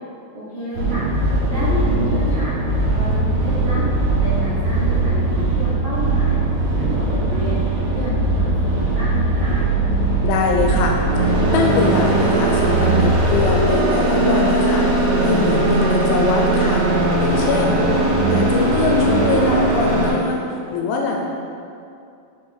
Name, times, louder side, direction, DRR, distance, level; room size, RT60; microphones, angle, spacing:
voice 1, 0.3-1.0 1.5-2.5 2.9-3.8 4.2-6.4 6.7-7.6 7.9-9.6 15.7-16.0 17.7-18.2, right 1 dB, 90° right, -10 dB, 1.3 m, -29 dB
sound 1, 0.7-20.1, right 2 dB, 70° right, 3.0 m, -19 dB
voice 2, 10.2-16.9 17.2-17.8 18.3-20.4 20.7-21.2, left 4 dB, 85° left, 0 dB, 2.4 m, -22 dB
6.7 x 4.3 x 3.7 m, 2.5 s
omnidirectional pair, 4.3 m